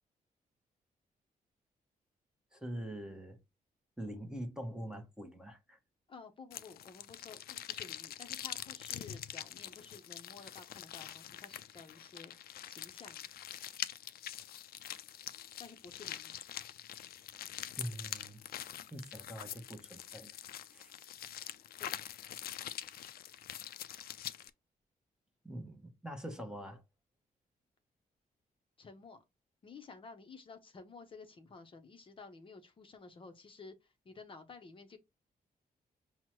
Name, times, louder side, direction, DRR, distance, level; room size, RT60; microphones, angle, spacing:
voice 1, 2.5-3.4 4.0-5.8 17.8-18.4 18.9-20.3 20.7-20.9 25.4-26.8, right 1 dB, 5° right, 0.7 m, -44 dB
voice 2, 6.1-13.3 15.6-16.4 21.8-22.0 28.8-29.2 29.6-33.7 34.1-35.0, left 4 dB, 35° left, 0.6 m, -53 dB
sound 1, 6.5-24.5, left 11 dB, 85° left, 0.4 m, -45 dB
6.0 x 2.0 x 2.9 m
wide cardioid pair, 180°, 15 cm